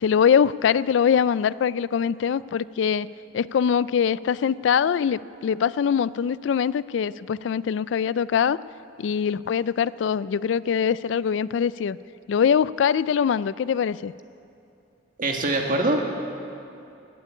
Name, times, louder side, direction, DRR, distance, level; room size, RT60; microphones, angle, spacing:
voice 1, 0.0-3.1 3.3-8.6 9.0-12.0 12.3-14.1, left 7 dB, 80° left, 18 dB, 0.3 m, -23 dB
voice 2, 15.2-16.1, right 2 dB, 50° right, 2 dB, 1.8 m, -23 dB
17.0 x 8.2 x 9.8 m, 2.6 s
head